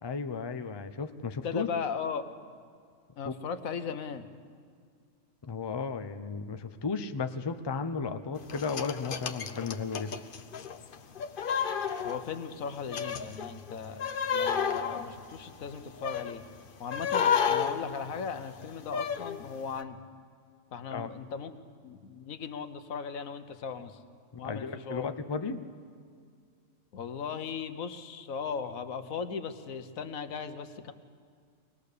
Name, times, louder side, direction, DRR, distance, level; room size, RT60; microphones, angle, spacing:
voice 1, 0.0-1.7 3.2-3.3 5.4-10.2 20.9-21.1 24.4-25.6, left 5 dB, 25° left, 8 dB, 0.6 m, -34 dB
voice 2, 1.4-2.3 3.2-4.3 12.0-16.5 16.8-20.0 20.7-21.5 21.8-24.0 24.4-25.1 26.9-30.9, left 6 dB, 85° left, 9 dB, 1.4 m, -37 dB
sound 1, 8.5-12.6 12.9-16.4 16.9-19.4 19.8-19.9, left 7 dB, 45° left, 0.9 m, -31 dB
23.0 x 20.0 x 6.8 m, 2.1 s
omnidirectional pair, 1.4 m